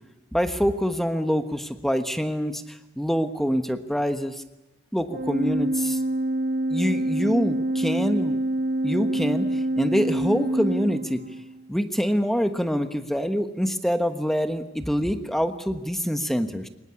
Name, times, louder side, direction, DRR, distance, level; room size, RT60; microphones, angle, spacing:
voice 1, 0.3-4.3 4.9-6.0 6.7-8.4 8.8-11.2 11.7-16.7, equal, ahead, 8 dB, 1.2 m, -25 dB
Organ, 5.1-11.6, right 1 dB, 45° right, 1.0 m, -26 dB
23.0 x 20.0 x 9.7 m, 1.1 s
head